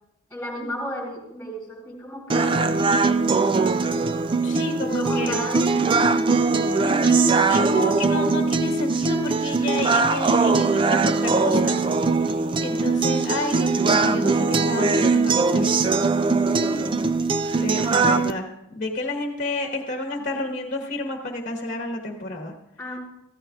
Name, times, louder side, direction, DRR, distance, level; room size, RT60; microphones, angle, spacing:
voice 1, 0.3-3.8 4.8-6.1 17.7-18.3 22.8-23.0, equal, 5° left, -2 dB, 3.7 m, -35 dB
sound 1, 2.3-18.3, right 4 dB, 25° right, 0.3 m, -21 dB
voice 2, 4.4-5.4 6.8-11.8 12.2-12.4 12.6-15.9 17.5-22.5, left 2 dB, 40° left, 3 dB, 1.3 m, -30 dB
15.5 x 14.0 x 2.4 m, 0.82 s
head